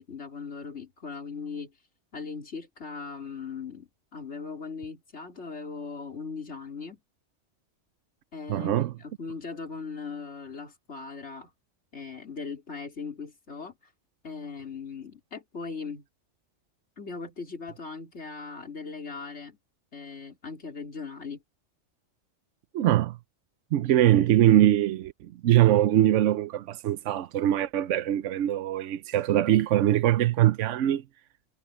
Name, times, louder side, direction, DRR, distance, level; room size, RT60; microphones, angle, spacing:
voice 1, 0.0-1.8 2.1-7.0 8.3-11.5 11.9-13.8 14.2-16.1 17.0-19.6 19.9-21.4, left 5 dB, 70° left, 3.8 m, -39 dB
voice 2, 8.5-8.9 22.7-23.2 23.7-31.0, right 12 dB, 85° right, 1.0 m, -22 dB
omnidirectional pair, 1.2 m